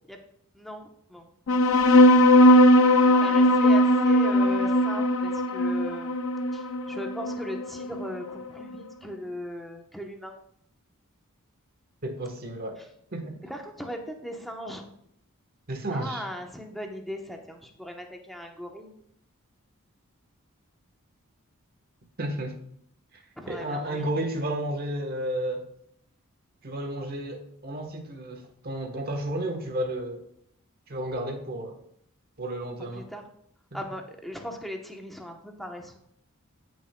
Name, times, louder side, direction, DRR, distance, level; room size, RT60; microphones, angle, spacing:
voice 1, 0.5-1.3 3.0-6.1 6.5-10.3 13.4-14.9 15.9-18.9 23.4-24.1 32.9-33.2 33.7-36.0, equal, ahead, 2 dB, 0.9 m, -38 dB
sound 1, 1.5-8.4, left 1 dB, 65° left, 0.6 m, -19 dB
voice 2, 12.0-12.8 13.1-13.3 15.7-16.3 22.2-22.6 23.1-25.6 26.6-30.3 30.9-31.8 32.4-33.1 33.7-33.9, right 1 dB, 45° right, 4 dB, 1.2 m, -32 dB
14.5 x 6.2 x 2.3 m, 0.72 s
head